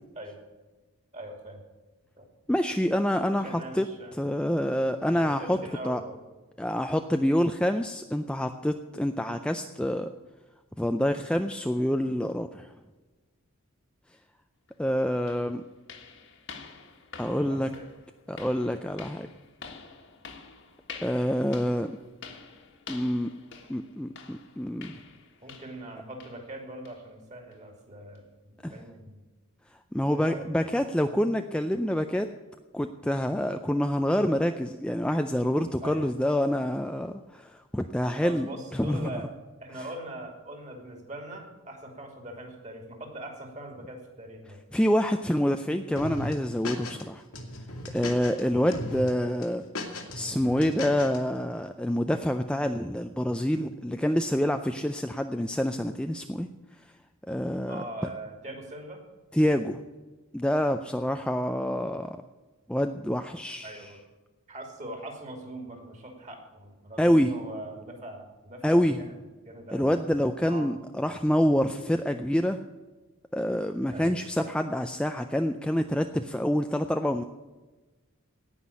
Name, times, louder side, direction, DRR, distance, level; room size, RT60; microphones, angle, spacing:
voice 1, 1.1-1.6 2.2-2.3 3.3-4.1 5.1-6.1 17.3-17.9 25.4-29.2 30.1-30.4 35.8-36.1 38.2-39.3 39.6-44.6 48.5-48.7 57.7-59.0 61.1-61.2 63.6-64.0 64.5-69.2 69.4-70.0 70.4-70.7 73.9-74.5, right 1 dB, 30° right, 2 dB, 2.7 m, -41 dB
voice 2, 2.5-3.9 4.1-5.6 5.8-6.0 6.6-10.1 10.8-12.7 14.8-15.6 17.2-17.7 18.3-19.3 21.0-21.9 22.9-23.3 23.7-25.0 28.6-28.7 29.9-32.3 32.7-39.1 44.7-47.2 47.9-49.6 50.1-56.5 57.3-57.8 59.3-59.8 60.3-62.2 62.7-63.9 67.0-67.3 68.6-69.0 69.7-72.6 73.3-77.2, equal, 5° left, 6 dB, 0.4 m, -27 dB
sound 1, 14.7-14.8 15.3-25.9 26.2-26.5 26.9-27.0 27.5-27.6 28.2-28.3, left 5 dB, 55° left, 1.6 m, -47 dB
sound 2, 46.0-47.0 47.3-48.4 48.7-49.1 49.4-51.2, left 1 dB, 80° left, 2.1 m, -36 dB
17.5 x 6.0 x 8.5 m, 1.2 s
head